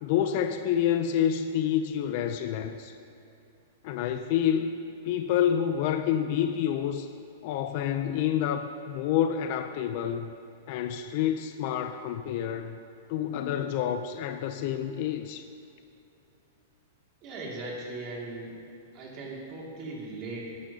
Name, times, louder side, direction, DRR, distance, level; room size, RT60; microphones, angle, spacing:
voice 1, 0.0-2.9 3.8-4.8 5.0-7.1 7.4-10.3 10.7-12.8 13.1-15.4, left 9 dB, 40° left, 9 dB, 0.4 m, -28 dB
voice 2, 17.2-18.6 18.9-20.6, right 2 dB, 30° right, -3 dB, 2.2 m, -38 dB
18.5 x 10.5 x 2.8 m, 2.7 s
supercardioid pair, 170°, 0 cm